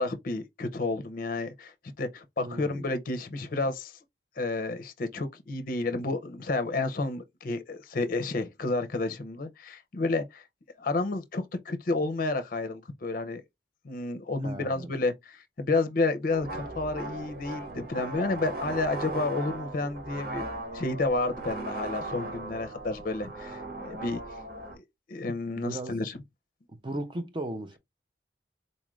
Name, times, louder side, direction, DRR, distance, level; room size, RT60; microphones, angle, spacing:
voice 1, 0.0-3.9 4.4-10.4 10.8-13.4 13.8-20.5 20.7-24.2 24.7-24.8 25.1-26.2, left 2 dB, 50° left, 0.5 m, -30 dB
voice 2, 2.4-2.8 14.4-14.9 25.6-26.0 26.7-27.8, right 1 dB, 25° right, 0.6 m, -36 dB
sound 1, 16.3-24.8, right 2 dB, 55° right, 1.4 m, -38 dB
4.0 x 2.4 x 3.1 m
head